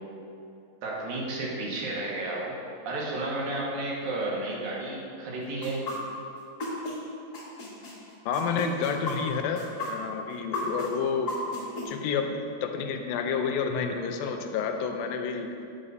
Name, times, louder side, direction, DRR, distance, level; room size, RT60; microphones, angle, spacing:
voice 1, 0.8-2.6 2.8-5.8, right 2 dB, 80° right, -4 dB, 3.2 m, -32 dB
sound 1, 5.6-7.0 7.3-11.8, left 2 dB, 35° left, 1.9 m, -34 dB
voice 2, 8.3-11.4 11.9-15.6, left 6 dB, 90° left, 5 dB, 2.4 m, -30 dB
13.5 x 8.1 x 2.7 m, 2.6 s
omnidirectional pair, 4.0 m